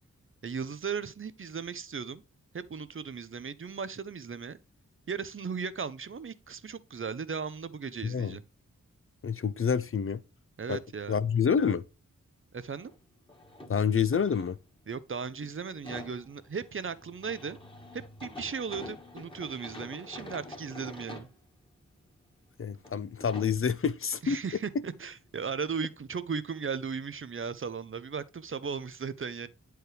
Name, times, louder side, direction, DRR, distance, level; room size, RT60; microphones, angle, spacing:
voice 1, 0.4-2.2 2.5-4.6 5.1-8.4 10.6-11.2 12.5-12.9 14.9-17.6 17.9-21.3 24.2-29.5, right 6 dB, 45° right, 0.6 m, -36 dB
voice 2, 8.0-8.4 9.2-10.2 10.7-10.8 11.1-11.8 13.7-14.6 22.6-24.4, left 7 dB, 45° left, 0.5 m, -27 dB
sound 1, 12.7-13.0 13.3-15.0 15.4-21.3 22.0-22.1 22.8-22.9 23.2-23.6 25.3-25.4 25.7-25.8, left 1 dB, 15° left, 1.6 m, -46 dB
9.2 x 4.7 x 3.3 m
wide cardioid pair, 100°, 30 cm